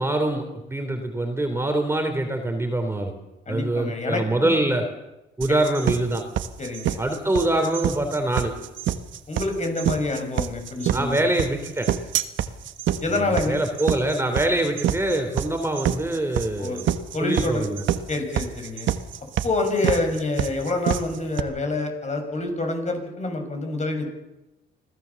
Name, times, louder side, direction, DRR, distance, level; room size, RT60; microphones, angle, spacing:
voice 1, 0.0-3.1 3.5-4.8 5.4-6.2 7.0-8.5 10.9-11.9 13.1-16.9 17.2-17.8, right 1 dB, 10° right, 5 dB, 3.3 m, -24 dB
voice 2, 3.5-4.5 6.6-7.0 9.3-11.3 13.0-13.6 16.6-16.9 17.1-17.7 18.1-18.9 19.4-24.1, left 2 dB, 35° left, 4 dB, 6.5 m, -27 dB
sound 1, 5.4-21.4, right 11 dB, 75° right, 1.4 m, -26 dB
26.0 x 16.5 x 7.1 m, 0.97 s
cardioid pair, 90°, 20 cm